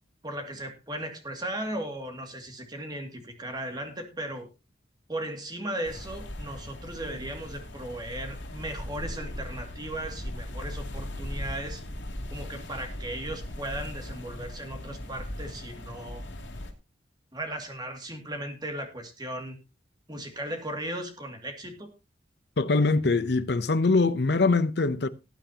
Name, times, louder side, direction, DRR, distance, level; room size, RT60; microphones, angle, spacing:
voice 1, 0.2-4.5 5.1-11.8 12.3-16.2 17.3-19.6 20.1-21.9, right 1 dB, 20° right, 2.3 m, -36 dB
sound 1, 5.8-16.7, left 1 dB, 85° left, 2.8 m, -38 dB
voice 2, 22.6-25.1, left 3 dB, 60° left, 0.7 m, -23 dB
18.5 x 9.0 x 2.9 m
head